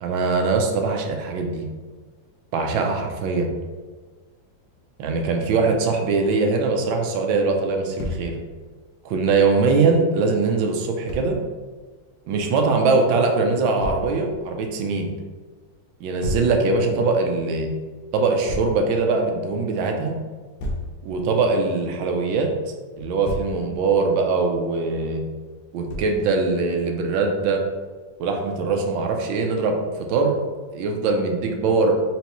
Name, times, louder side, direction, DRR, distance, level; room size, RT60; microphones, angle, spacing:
voice 1, 0.0-1.6 2.5-3.5 5.0-8.3 9.0-11.4 12.3-15.1 16.0-17.7 18.1-20.2 21.0-22.5 23.0-25.2 25.7-27.6 28.2-30.4 30.7-31.9, right 4 dB, 85° right, 3 dB, 1.4 m, -22 dB
Thump thud, 8.0-8.3 11.1-11.3 13.8-14.1 16.2-16.5 18.5-18.8 20.6-20.9 23.0-23.6 25.9-26.2, left 1 dB, 80° left, 1.3 m, -30 dB
4.5 x 3.0 x 2.9 m, 1.4 s
omnidirectional pair, 2.0 m